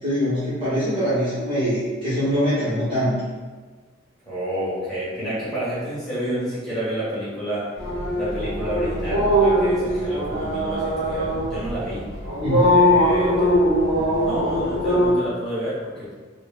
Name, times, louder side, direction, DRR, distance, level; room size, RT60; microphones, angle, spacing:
voice 1, 0.0-3.1 12.4-12.8, equal, 30° right, -12 dB, 1.1 m, -23 dB
voice 2, 4.2-7.7 8.1-12.0 12.7-13.6 13.9-16.1, equal, 5° left, -12 dB, 1.5 m, -29 dB
sound 1, 7.8-15.1, equal, 45° right, 1.5 m, -21 dB
3.6 x 2.2 x 3.4 m, 1.4 s
head